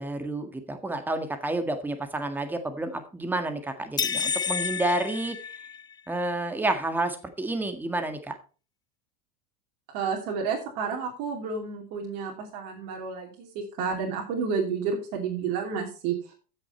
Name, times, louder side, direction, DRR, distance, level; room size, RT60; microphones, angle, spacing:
voice 1, 0.0-5.4 6.1-8.4, right 2 dB, 10° right, 7 dB, 1.7 m, -30 dB
sound 1, 4.0-6.1, left 7 dB, 20° left, 0.5 m, -30 dB
voice 2, 9.9-16.3, right 5 dB, 65° right, 0 dB, 2.8 m, -31 dB
15.0 x 6.5 x 4.3 m, 0.37 s
supercardioid pair, 100°, 20 cm